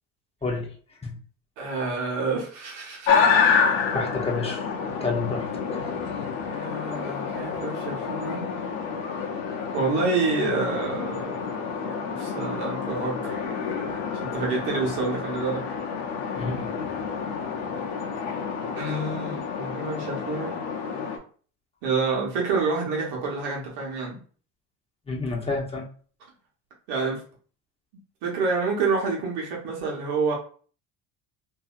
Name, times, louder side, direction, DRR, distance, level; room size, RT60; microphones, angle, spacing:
voice 1, 0.4-0.7 1.0-1.2 3.9-4.7 5.0-5.8 14.1-14.2 16.4-16.7 25.1-25.9, left 3 dB, 15° left, -1 dB, 0.9 m, -29 dB
voice 2, 1.6-3.2 6.5-8.4 9.7-13.4 14.2-15.7 18.7-20.6 21.8-24.2 26.9-27.2 28.2-30.3, right 4 dB, 85° right, -2 dB, 1.3 m, -28 dB
sound 1, 3.1-21.2, left 6 dB, 80° left, 0.8 m, -28 dB
2.7 x 2.7 x 2.4 m, 0.42 s
supercardioid pair, 75°, 45 cm